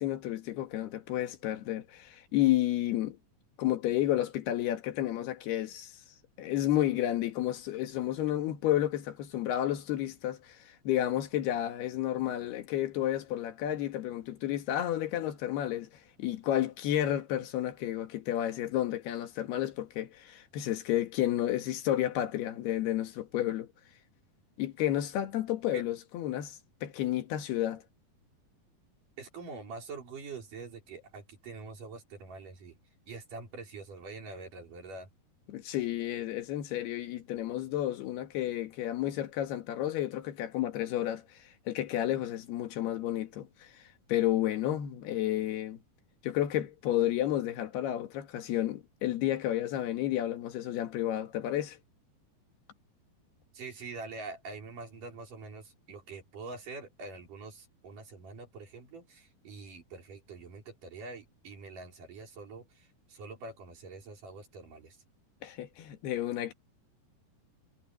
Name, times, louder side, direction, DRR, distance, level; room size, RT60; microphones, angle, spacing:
voice 1, 0.0-3.2 3.6-5.9 6.4-15.9 16.2-23.7 24.6-27.8 35.5-41.2 41.7-43.8 44.1-45.8 46.2-51.8 65.4-66.5, left 13 dB, 90° left, 3.7 m, -31 dB
voice 2, 29.2-32.8 33.1-35.1 53.5-65.0, right 3 dB, 55° right, 5.7 m, -45 dB
omnidirectional pair, 4.4 m